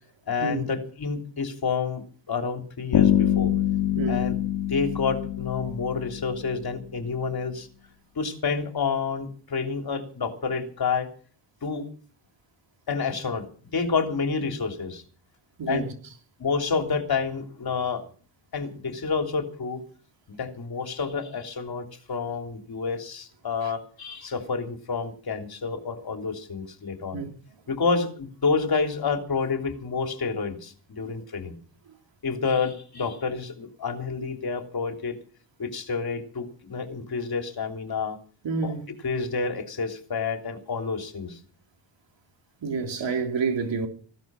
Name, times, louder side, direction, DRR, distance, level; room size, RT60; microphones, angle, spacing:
voice 1, 0.3-3.5 4.1-4.4 4.7-7.7 8.1-11.1 11.6-11.8 12.9-13.4 13.7-15.0 15.7-15.8 16.4-18.0 18.5-19.8 20.3-27.2 27.7-31.5 32.2-35.2 35.6-38.2 38.6-38.7 39.0-41.4, left 5 dB, 45° left, 3.2 m, -29 dB
Bass guitar, 2.9-6.7, left 11 dB, 75° left, 1.6 m, -24 dB
voice 2, 4.0-4.3 15.6-15.9 27.1-27.3 38.4-38.8 42.6-43.9, right 4 dB, 60° right, 3.8 m, -28 dB
16.0 x 12.0 x 6.2 m
cardioid pair, 125°, 50 cm